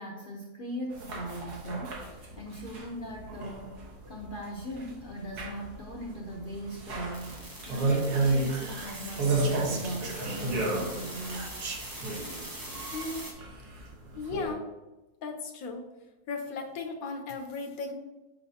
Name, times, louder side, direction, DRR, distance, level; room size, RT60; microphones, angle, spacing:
voice 1, 0.0-7.4 7.7-11.6, equal, 50° left, -1 dB, 0.7 m, -39 dB
sound 1, 0.9-14.5, right 2 dB, 85° right, 1.8 m, -33 dB
sound 2, 7.1-13.3, right 1 dB, 20° right, 0.7 m, -43 dB
Whispering, 7.8-10.8 11.3-12.0, right 4 dB, 55° right, 0.8 m, -42 dB
voice 2, 12.9-13.3 14.1-14.6 15.2-15.9 16.3-17.9, left 4 dB, 70° left, 4 dB, 1.1 m, -36 dB
6.8 x 5.2 x 2.7 m, 1.1 s
omnidirectional pair, 1.6 m